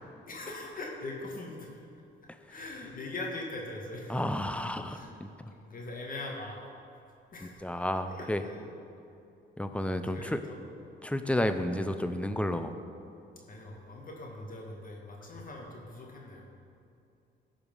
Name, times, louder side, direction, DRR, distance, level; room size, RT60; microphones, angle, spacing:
voice 1, 0.3-1.8 2.4-4.2 4.9-5.2 5.6-6.6 7.3-7.7 8.1-8.7 10.1-10.6 13.5-16.5, left 2 dB, 45° left, -1 dB, 2.0 m, -41 dB
voice 2, 4.1-5.3 7.6-8.4 9.6-10.4 11.0-12.7, left 1 dB, 5° left, 8 dB, 0.6 m, -31 dB
14.5 x 5.1 x 5.6 m, 2.6 s
cardioid pair, 90°, 20 cm